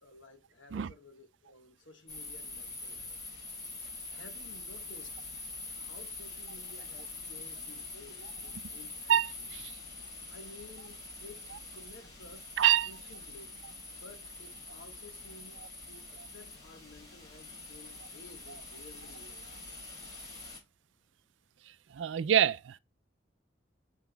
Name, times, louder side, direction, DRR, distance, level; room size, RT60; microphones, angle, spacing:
voice 1, 0.0-3.2 4.1-5.2 5.8-9.6 10.3-12.5 12.8-13.6 14.0-19.8, left 2 dB, 85° left, 1.2 m, -54 dB
sound 1, 2.1-20.6, left 3 dB, 35° left, 3.8 m, -45 dB
voice 2, 9.1-9.7 12.6-12.9 16.2-16.3 21.9-22.8, right 10 dB, 85° right, 0.4 m, -26 dB
5.9 x 4.9 x 3.3 m
head